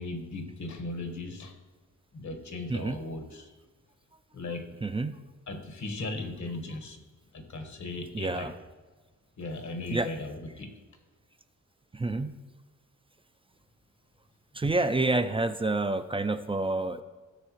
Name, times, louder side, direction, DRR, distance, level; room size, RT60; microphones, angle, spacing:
voice 1, 0.0-1.6 2.1-3.5 4.3-4.7 5.5-7.0 7.3-8.5 9.4-10.7, left 2 dB, 60° left, 5 dB, 1.5 m, -37 dB
voice 2, 2.7-3.0 4.8-5.2 8.1-8.5 9.9-10.1 11.9-12.4 14.5-17.0, right 2 dB, 15° right, 10 dB, 0.4 m, -28 dB
16.5 x 6.5 x 3.1 m, 1.3 s
wide cardioid pair, 125°, 32 cm